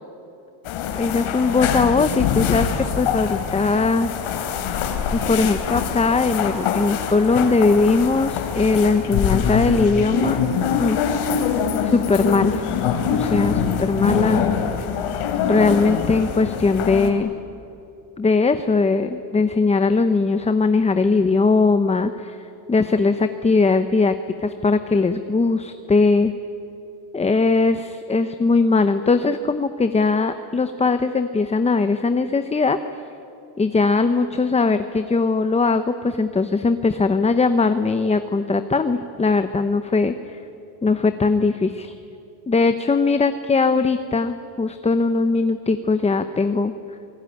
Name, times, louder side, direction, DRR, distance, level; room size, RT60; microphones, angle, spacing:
sound 1, 0.6-17.1, left 7 dB, 85° left, 3.3 m, -24 dB
voice 1, 0.9-4.1 5.1-10.4 10.8-11.0 11.8-12.6 13.1-14.4 15.4-17.3 18.2-24.2 24.4-26.3 27.1-32.8 33.6-40.4 40.8-41.9 42.5-46.7, left 4 dB, 15° left, 9 dB, 0.7 m, -20 dB
28.0 x 20.0 x 9.9 m, 2.8 s
cardioid pair, 155°, 50 cm